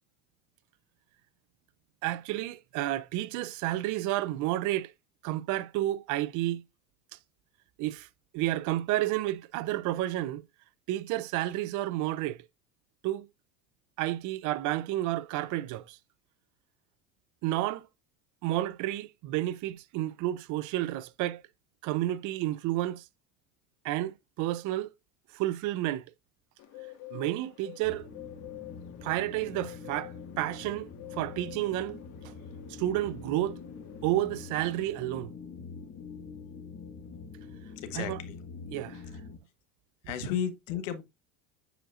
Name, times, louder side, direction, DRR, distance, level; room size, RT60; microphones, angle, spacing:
voice 1, 2.0-4.9 5.2-6.6 7.8-8.1 8.3-10.4 10.9-12.5 13.0-13.3 14.0-16.0 17.4-17.9 18.4-21.4 21.8-23.1 23.8-24.9 25.3-26.1 27.1-28.1 29.0-32.3 32.7-33.6 34.0-35.3 37.9-38.2 38.7-39.0, right 15 dB, 55° right, 0.6 m, -31 dB
Bird, 26.6-34.9, left 16 dB, 55° left, 1.5 m, -49 dB
sound 1, 27.8-39.4, left 5 dB, 30° left, 1.0 m, -45 dB
voice 2, 37.8-38.4 40.0-41.0, left 9 dB, 90° left, 1.3 m, -33 dB
8.8 x 5.1 x 2.5 m
supercardioid pair, 120°, 37 cm